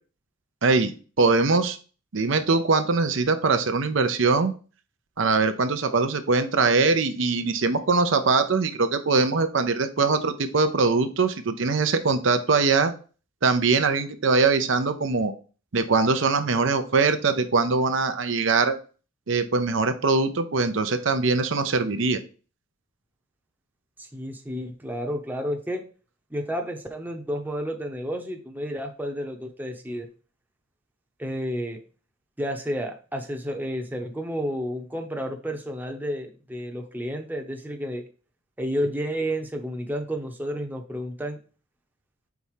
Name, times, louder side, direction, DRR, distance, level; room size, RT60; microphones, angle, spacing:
voice 1, 0.6-1.8 2.1-4.5 5.2-12.9 13.4-15.3 15.7-18.7 19.3-22.2, right 4 dB, 65° right, 8 dB, 0.7 m, -22 dB
voice 2, 24.0-25.8 26.3-30.1 31.2-31.8 32.4-38.0 38.6-41.4, equal, 10° right, 3 dB, 0.8 m, -31 dB
4.8 x 4.2 x 5.6 m, 0.37 s
head